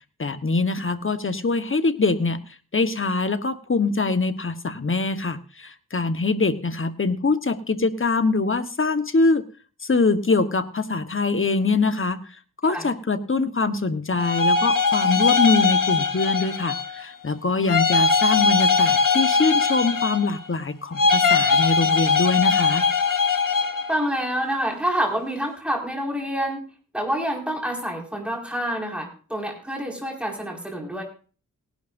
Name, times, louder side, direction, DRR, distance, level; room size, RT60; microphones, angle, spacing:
voice 1, 0.2-2.4 2.7-9.4 9.8-12.2 12.6-22.9, left 3 dB, 40° left, 11 dB, 1.2 m, -23 dB
sound 1, 14.2-17.0 17.7-20.5 20.9-23.9, left 4 dB, 70° left, 2.1 m, -20 dB
voice 2, 23.9-26.6 26.9-31.0, equal, 5° right, 1 dB, 5.1 m, -27 dB
18.5 x 11.5 x 2.6 m, 0.38 s
cardioid pair, 50°, 33 cm